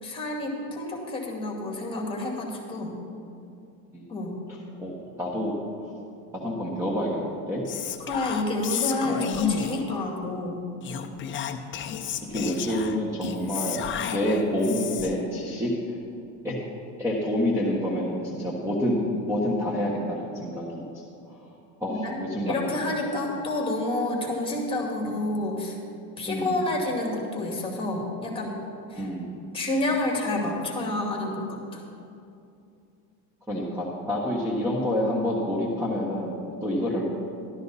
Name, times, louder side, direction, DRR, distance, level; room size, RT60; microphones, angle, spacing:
voice 1, 0.0-3.0 4.1-4.4 8.0-10.7 21.9-22.2 22.5-25.8 26.2-28.5 28.9-29.1 29.5-31.8, left 2 dB, 10° left, -1 dB, 2.3 m, -29 dB
voice 2, 4.5-5.9 6.3-7.6 8.7-8.8 9.0-9.3 11.5-11.9 12.3-16.0 16.4-16.5 17.0-21.5 21.8-22.8 23.1-23.2 24.2-24.3 25.1-25.3 26.2-26.6 28.9-29.4 33.5-37.1, left 1 dB, 5° right, -4 dB, 1.4 m, -28 dB
Whispering, 7.7-10.0 10.8-15.2, left 8 dB, 30° left, 0.6 m, -32 dB
13.0 x 12.5 x 4.1 m, 2.6 s
supercardioid pair, 135°, 42 cm